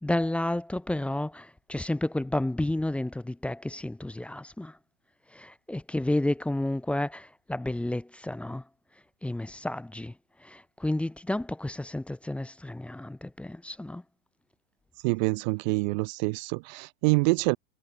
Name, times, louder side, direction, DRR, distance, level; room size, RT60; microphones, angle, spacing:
voice 1, 0.0-4.8 5.3-8.7 9.2-14.0, left 1 dB, 5° left, 0.8 m, -31 dB
voice 2, 15.0-17.6, right 29 dB, 40° right, 0.5 m, -26 dB
hypercardioid pair, 100°, 35 cm